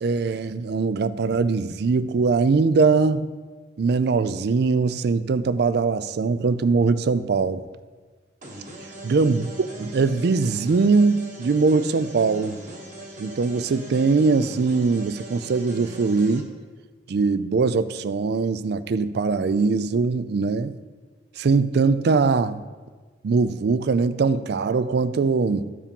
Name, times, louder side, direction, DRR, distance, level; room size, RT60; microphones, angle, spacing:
voice 1, 0.0-3.3 3.8-7.7 9.0-9.5 9.8-12.6 13.2-16.5 17.1-20.8 21.4-22.6 23.2-25.6, right 4 dB, 60° right, 14 dB, 0.4 m, -21 dB
sound 1, 8.4-16.4, right 1 dB, 45° right, 1.6 m, -40 dB
13.5 x 4.9 x 5.3 m, 1.4 s
head